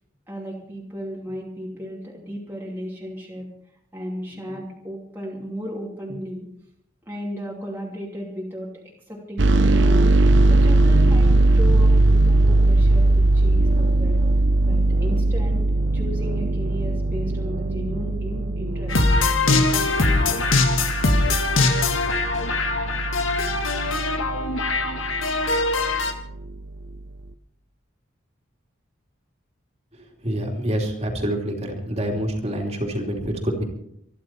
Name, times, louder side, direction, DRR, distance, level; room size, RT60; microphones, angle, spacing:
voice 1, 0.3-3.5 3.9-6.5 7.0-10.1 10.4-14.2 14.7-15.6 15.9-19.0, equal, 10° right, -4 dB, 2.7 m, -34 dB
sound 1, 9.4-26.9, right 2 dB, 65° right, 0.8 m, -20 dB
sound 2, 18.9-26.1, left 3 dB, 90° left, 1.9 m, -22 dB
voice 2, 30.2-33.6, equal, 30° right, 1 dB, 3.0 m, -26 dB
25.5 x 11.0 x 4.4 m, 0.72 s
head